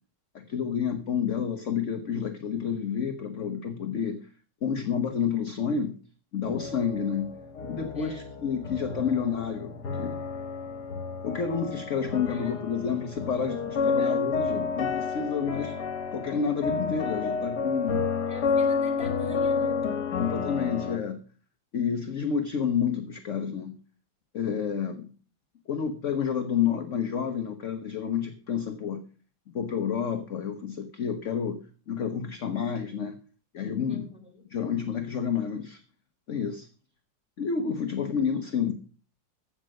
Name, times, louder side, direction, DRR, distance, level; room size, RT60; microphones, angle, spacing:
voice 1, 0.3-4.3 4.6-6.0 6.3-7.3 7.6-10.2 11.2-15.8 16.1-18.2 20.2-21.2 21.7-23.8 24.3-25.1 25.7-29.0 29.5-31.6 31.9-33.2 33.5-34.1 34.5-35.8 36.3-36.7 37.4-38.7, left 7 dB, 50° left, 7 dB, 1.2 m, -29 dB
sound 1, 6.4-21.0, left 5 dB, 65° left, 1.8 m, -30 dB
voice 2, 7.9-8.3 12.3-12.6 14.0-14.2 18.3-19.8 33.9-34.2, right 1 dB, 5° right, 1 dB, 3.5 m, -42 dB
15.5 x 6.3 x 6.4 m, 0.40 s
omnidirectional pair, 1.9 m